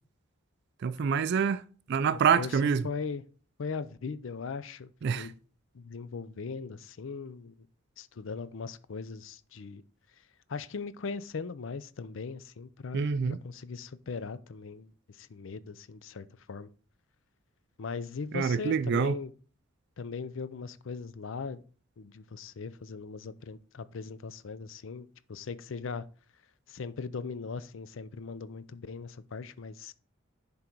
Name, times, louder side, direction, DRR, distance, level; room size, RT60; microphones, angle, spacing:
voice 1, 0.8-1.6 1.9-2.8 5.0-5.3 12.9-13.4 18.3-19.2, right 6 dB, 55° right, 0.3 m, -26 dB
voice 2, 2.4-3.3 3.6-5.3 5.7-7.7 8.0-9.8 10.1-16.7 17.8-19.3 20.0-21.6 22.0-26.1 26.7-29.9, left 5 dB, 65° left, 0.5 m, -39 dB
10.5 x 3.7 x 4.6 m
head